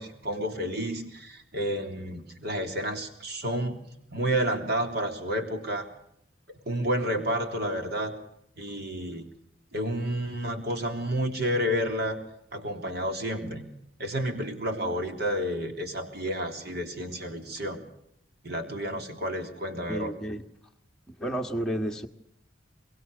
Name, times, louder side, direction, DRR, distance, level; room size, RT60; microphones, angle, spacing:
voice 1, 0.0-3.8 4.1-5.9 6.7-8.1 8.6-9.3 9.7-12.2 12.5-13.7 14.0-17.8 18.4-20.1, equal, 55° right, 5 dB, 3.3 m, -30 dB
voice 2, 19.9-20.4 21.2-22.1, right 1 dB, 5° left, 1 dB, 1.6 m, -31 dB
23.5 x 22.5 x 6.7 m, 0.75 s
head